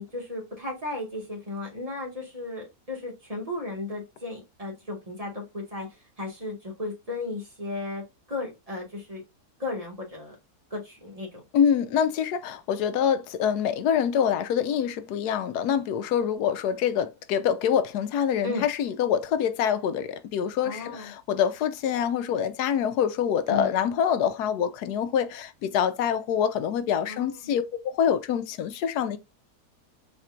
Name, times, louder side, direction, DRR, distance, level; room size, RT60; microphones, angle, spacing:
voice 1, 0.0-5.9 6.2-8.0 8.3-9.2 9.6-10.3 10.7-11.4 18.4-18.6 20.6-21.1 23.5-23.8 27.1-27.5, left 2 dB, 25° right, 1.7 m, -35 dB
voice 2, 11.5-29.2, left 8 dB, 80° left, 1.2 m, -25 dB
4.3 x 4.2 x 2.4 m
omnidirectional pair, 1.7 m